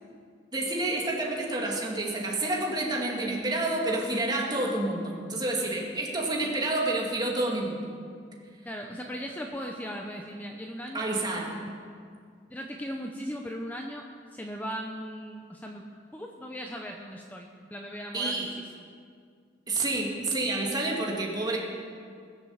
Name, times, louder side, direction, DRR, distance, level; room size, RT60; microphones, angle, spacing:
voice 1, 0.5-7.8 10.9-11.5 18.1-18.5 19.7-21.6, right 2 dB, 25° right, -2 dB, 2.4 m, -29 dB
voice 2, 8.6-11.1 11.3-11.7 12.5-15.9 16.1-18.7, equal, 10° left, 1 dB, 0.7 m, -38 dB
20.0 x 7.5 x 7.1 m, 2.2 s
head